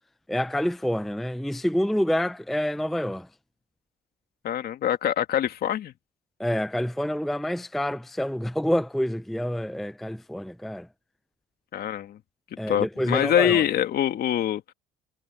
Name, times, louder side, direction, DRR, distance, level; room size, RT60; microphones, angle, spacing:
voice 1, 0.3-3.3 6.4-10.9 12.6-13.6, equal, ahead, 0.5 m, -27 dB
voice 2, 4.4-5.9 11.7-12.2 12.7-14.6, left 10 dB, 55° left, 2.2 m, -24 dB
supercardioid pair, 90°, 19 cm